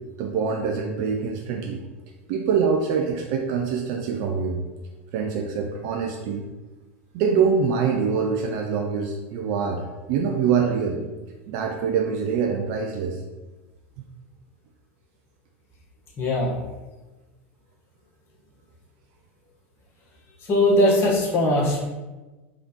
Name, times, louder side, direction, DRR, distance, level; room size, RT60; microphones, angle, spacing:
voice 1, 0.2-1.8 2.3-4.6 5.1-6.4 7.1-9.8 10.1-11.0 11.5-13.2, right 6 dB, 55° right, 2 dB, 0.5 m, -24 dB
voice 2, 16.2-16.5 20.5-21.8, left 1 dB, 35° left, -3 dB, 1.3 m, -20 dB
3.6 x 3.3 x 2.9 m, 1.2 s
hypercardioid pair, 85°, 7 cm